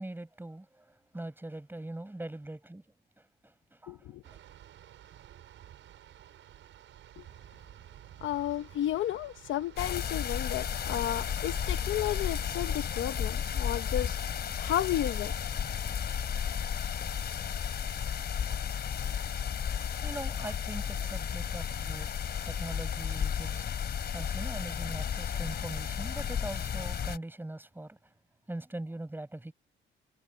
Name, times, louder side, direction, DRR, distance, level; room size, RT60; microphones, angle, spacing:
voice 1, 0.0-2.8 3.2-4.4 20.0-28.0 28.5-29.5, right 1 dB, 10° right, 7.2 m, -42 dB
voice 2, 3.9-4.2 7.2-7.3 8.2-14.2 14.6-15.3, left 12 dB, 75° left, 1.1 m, -33 dB
sound 1, 4.2-12.8, right 11 dB, 75° right, 6.1 m, -52 dB
sound 2, 9.8-27.2, left 8 dB, 55° left, 3.5 m, -33 dB
cardioid pair, 90°, 20 cm